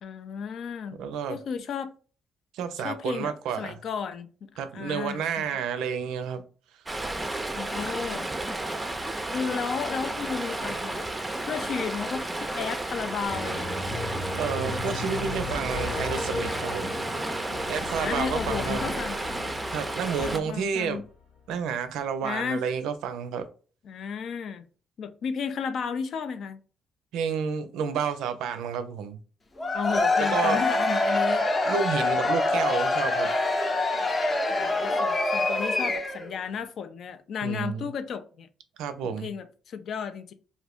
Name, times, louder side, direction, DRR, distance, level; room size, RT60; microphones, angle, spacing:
voice 1, 0.0-1.0 1.3-1.9 2.8-5.6 7.5-8.3 9.3-11.1 11.5-13.9 18.0-19.2 20.2-21.0 22.2-22.7 23.8-24.7 25.0-26.6 29.7-31.5 34.5-38.5 39.0-40.3, left 6 dB, 65° left, 0.4 m, -33 dB
voice 2, 1.0-1.4 2.5-3.8 4.6-6.4 14.3-16.9 17.7-18.8 19.7-21.0 21.5-23.5 27.1-29.2 30.3-30.6 31.6-33.3 37.4-37.9 38.8-39.3, right 7 dB, 90° right, 0.4 m, -30 dB
Stream, 6.9-20.4, right 2 dB, 15° right, 0.5 m, -32 dB
sound 1, 13.3-20.9, left 2 dB, 85° left, 1.5 m, -36 dB
Cheering / Crowd, 29.6-36.3, left 2 dB, 30° left, 0.7 m, -25 dB
2.6 x 2.5 x 3.4 m
cardioid pair, 90°, 0 cm